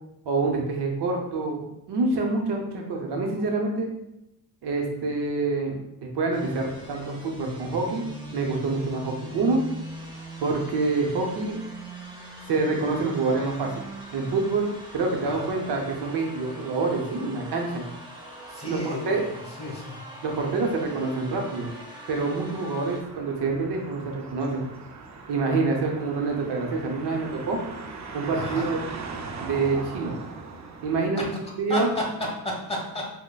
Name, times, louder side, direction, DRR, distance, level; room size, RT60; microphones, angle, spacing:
voice 1, 0.3-3.9 4.6-8.0 8.3-9.6 10.4-11.6 12.5-13.7 14.1-17.8 18.6-18.8 19.1-19.2 20.2-21.7 22.1-24.6 25.3-27.6 28.1-28.8 29.4-30.2 30.8-31.3 31.6-31.9, right 3 dB, 75° right, 1 dB, 0.7 m, -26 dB
sound 1, 6.3-23.0, right 1 dB, 10° right, 0.7 m, -41 dB
voice 2, 18.5-20.0 28.3-28.7 31.4-32.1 32.4-33.0, left 1 dB, 15° left, -2 dB, 1.1 m, -33 dB
sound 2, 23.0-31.0, right 4 dB, 45° right, 0.5 m, -39 dB
6.1 x 2.1 x 2.2 m, 0.87 s
cardioid pair, 75°, 40 cm